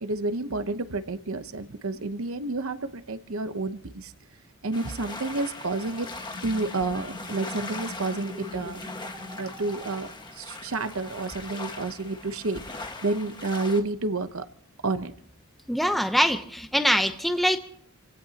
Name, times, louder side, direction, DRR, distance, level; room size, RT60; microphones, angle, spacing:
voice 1, 0.0-4.1 4.6-6.1 6.4-8.8 9.4-14.4 14.8-15.1, right 3 dB, 65° right, 10 dB, 0.8 m, -30 dB
sound 1, 4.7-13.8, left 3 dB, 20° left, 1.5 m, -40 dB
sound 2, 6.1-10.5, left 1 dB, 25° right, 1.9 m, -42 dB
voice 2, 15.7-17.6, equal, ahead, 7 dB, 0.7 m, -23 dB
28.5 x 17.0 x 2.9 m, 0.70 s
head